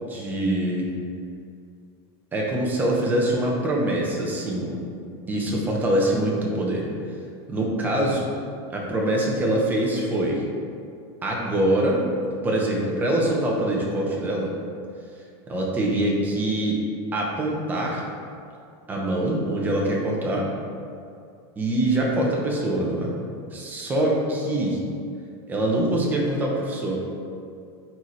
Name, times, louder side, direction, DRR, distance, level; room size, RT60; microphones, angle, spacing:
voice 1, 0.1-0.9 2.3-4.8 5.3-6.8 7.5-8.3 8.7-10.4 11.2-12.0 12.4-14.5 15.5-16.8 17.1-18.0 18.9-20.5 21.6-23.2 23.5-24.8 25.5-27.0, right 1 dB, 15° right, -3 dB, 1.0 m, -24 dB
9.0 x 4.3 x 3.3 m, 2.3 s
supercardioid pair, 160°, 14 cm